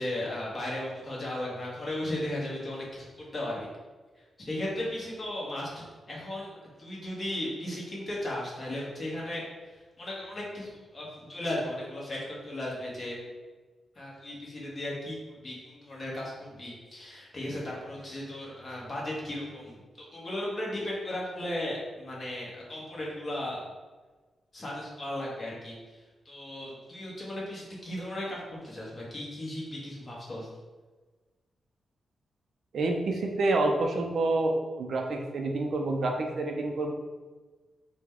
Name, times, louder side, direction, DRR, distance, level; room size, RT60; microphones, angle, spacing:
voice 1, 0.0-3.7 4.1-13.2 13.9-23.6 24.5-30.5, left 1 dB, 30° left, -4 dB, 1.1 m, -36 dB
voice 2, 32.7-36.9, right 2 dB, 60° right, 2 dB, 0.4 m, -28 dB
4.7 x 2.2 x 3.6 m, 1.3 s
wide cardioid pair, 155°, 0 cm